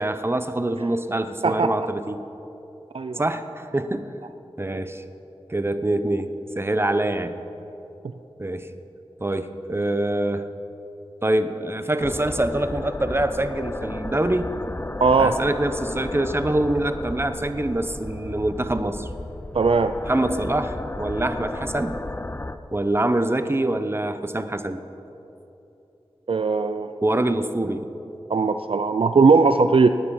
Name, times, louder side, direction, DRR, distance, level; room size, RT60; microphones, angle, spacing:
voice 1, 0.0-2.2 3.2-4.1 4.6-5.0 5.5-6.3 6.6-7.4 8.4-8.7 9.2-10.5 11.2-14.5 15.2-19.1 20.1-22.0 22.7-24.8 27.0-27.9, right 1 dB, 25° right, 10 dB, 0.8 m, -25 dB
sound 1, 12.0-22.6, left 2 dB, 20° left, 0.5 m, -33 dB
voice 2, 15.0-15.4 19.5-19.9 26.3-26.9 28.3-29.9, right 4 dB, 65° right, 10 dB, 0.4 m, -18 dB
18.5 x 9.5 x 5.6 m, 2.9 s
wide cardioid pair, 50°, 10 cm